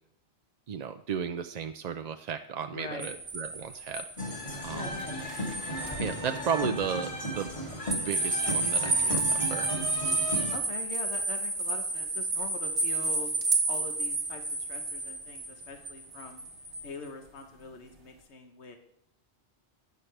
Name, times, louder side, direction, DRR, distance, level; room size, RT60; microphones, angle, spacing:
voice 1, 0.7-5.0 6.0-9.7, right 7 dB, 55° right, 8 dB, 0.5 m, -35 dB
voice 2, 2.7-3.1 4.7-5.4 10.5-13.3 13.7-16.4 16.8-18.8, left 4 dB, 85° left, 5 dB, 1.3 m, -43 dB
sound 1, 3.0-6.2 6.6-6.7 7.9-16.9, right 3 dB, 90° right, 1.6 m, -31 dB
sound 2, 4.2-10.6, equal, 30° left, 1.8 m, -35 dB
12.0 x 9.4 x 3.3 m, 0.74 s
omnidirectional pair, 1.1 m